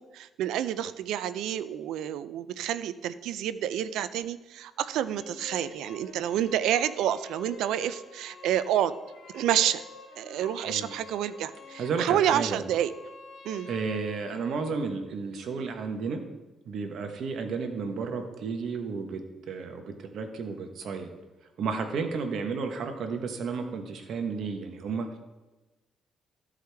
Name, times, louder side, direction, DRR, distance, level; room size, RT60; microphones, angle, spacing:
voice 1, 0.0-8.9 9.3-9.8 10.2-12.9 13.4-13.7, right 11 dB, 85° right, 14 dB, 0.4 m, -29 dB
sound 1, 4.8-14.8, left 5 dB, 55° left, 1.0 m, -48 dB
voice 2, 10.6-11.0 11.8-12.6 13.7-16.3 16.6-21.1 21.6-25.2, right 5 dB, 70° right, 6 dB, 1.1 m, -32 dB
13.5 x 4.8 x 3.4 m, 1.1 s
cardioid pair, 90°, 0 cm